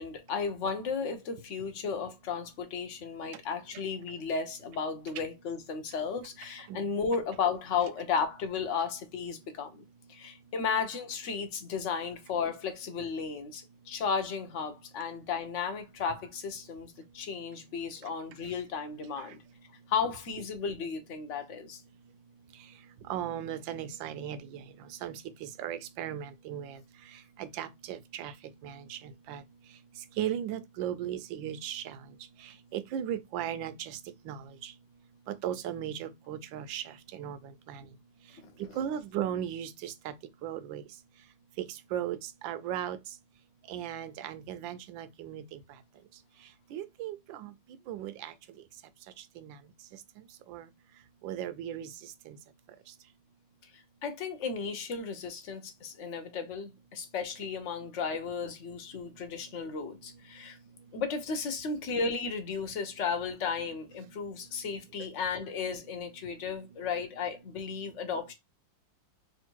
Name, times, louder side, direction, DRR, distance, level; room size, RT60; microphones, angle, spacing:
voice 1, 0.0-9.8 10.1-19.4 19.9-21.8 38.4-38.5 54.0-60.6 60.9-68.3, left 5 dB, 55° left, 0.9 m, -34 dB
voice 2, 23.1-24.6 24.9-26.8 27.4-28.3 28.6-29.4 30.2-32.0 32.7-34.0 34.2-34.7 35.3-37.4 37.7-37.8 38.8-40.1 40.4-40.8 41.6-43.0 43.7-45.6 46.7-47.5 47.9-48.3 49.4-49.6 50.5-50.6 51.2-51.9 52.3-52.4, right 10 dB, 80° right, 1.3 m, -37 dB
3.5 x 2.6 x 4.4 m
omnidirectional pair, 2.1 m